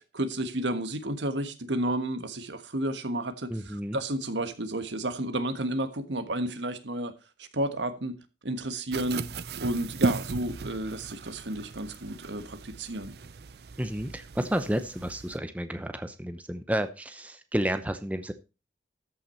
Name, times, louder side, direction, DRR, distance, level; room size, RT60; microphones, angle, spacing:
voice 1, 0.0-7.1 7.4-8.2 8.4-9.2 9.6-13.2, right 1 dB, 85° right, 1.4 m, -31 dB
voice 2, 3.5-4.0 13.8-18.3, equal, 10° right, 0.7 m, -31 dB
sound 1, 8.9-15.4, right 3 dB, 60° right, 0.5 m, -36 dB
13.5 x 6.0 x 4.3 m
head